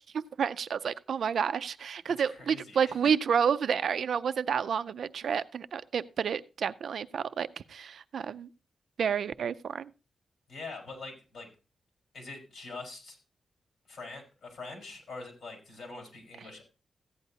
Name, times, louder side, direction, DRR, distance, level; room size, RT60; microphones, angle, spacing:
voice 1, 0.0-8.5 9.0-9.9, right 7 dB, 65° right, 0.4 m, -30 dB
voice 2, 2.2-3.0 10.5-11.5 12.1-13.2 13.9-16.6, left 3 dB, 70° left, 4.5 m, -44 dB
15.0 x 9.4 x 2.8 m
wide cardioid pair, 175°, 0 cm